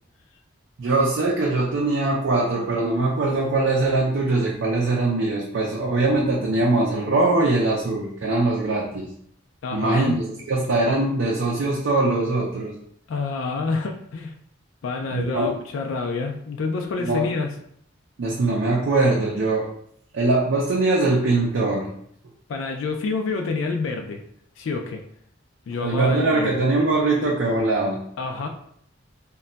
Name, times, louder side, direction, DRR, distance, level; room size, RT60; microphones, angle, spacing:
voice 1, 0.8-9.1 9.7-12.7 15.1-15.5 17.0-17.2 18.2-19.7 20.1-21.9 25.8-28.0, right 2 dB, 65° right, -2 dB, 0.4 m, -22 dB
voice 2, 9.6-10.2 13.1-14.3 14.8-17.5 22.5-24.2 24.6-25.0 25.7-26.5 28.2-28.5, left 4 dB, 75° left, 4 dB, 0.3 m, -28 dB
2.2 x 2.1 x 3.8 m, 0.67 s
head